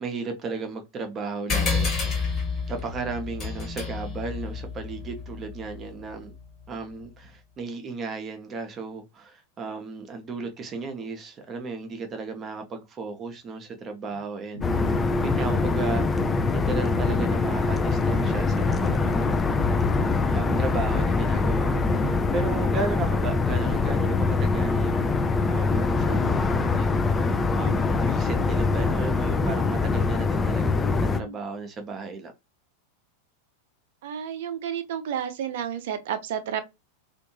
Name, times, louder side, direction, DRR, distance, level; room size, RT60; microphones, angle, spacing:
voice 1, 0.0-2.3 2.7-6.3 6.7-16.1 16.5-19.4 20.3-25.1 25.5-32.3, right 4 dB, 25° right, 0.8 m, -35 dB
sound 1, 1.5-6.4, left 5 dB, 30° left, 1.2 m, -30 dB
sound 2, 14.0-14.3 14.5-15.9 16.2-16.3 16.5-16.6 17.0-20.6 20.9-23.7 24.0-24.9 25.7-25.8 26.3-31.4, left 1 dB, 80° left, 0.9 m, -46 dB
sound 3, 14.6-31.2, left 4 dB, 15° left, 0.3 m, -23 dB
voice 2, 34.0-36.6, right 9 dB, 55° right, 0.5 m, -31 dB
2.6 x 2.5 x 2.7 m
figure-of-eight pair, 90°, 0 cm